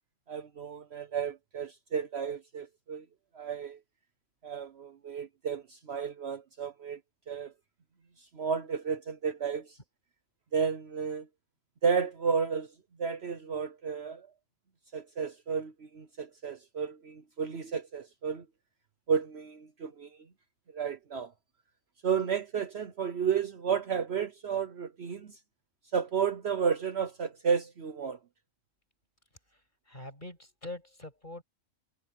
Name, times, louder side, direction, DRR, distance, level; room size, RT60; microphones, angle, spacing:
voice 1, 0.3-3.1 3.3-3.8 4.4-7.0 7.3-7.5 8.3-9.8 10.5-11.3 11.8-12.7 13.0-14.3 14.9-18.5 19.1-20.2 20.7-21.3 22.0-25.4 25.9-28.2, right 6 dB, 55° right, 1.1 m, -32 dB
voice 2, 29.5-31.4, left 2 dB, 35° left, 6.7 m, -44 dB
omnidirectional pair, 1.4 m